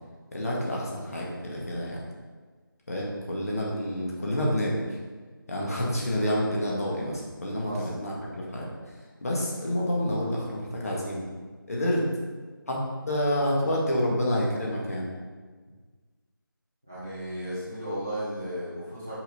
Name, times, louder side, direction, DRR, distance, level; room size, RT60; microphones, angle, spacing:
voice 1, 0.3-2.0 2.9-5.0 5.5-11.3 11.7-12.0 12.7-12.8 13.1-15.1, left 1 dB, 40° left, -3 dB, 1.5 m, -28 dB
voice 2, 16.9-19.1, equal, 5° right, -12 dB, 0.4 m, -34 dB
6.1 x 5.3 x 4.1 m, 1.4 s
figure-of-eight pair, 170°, 12 cm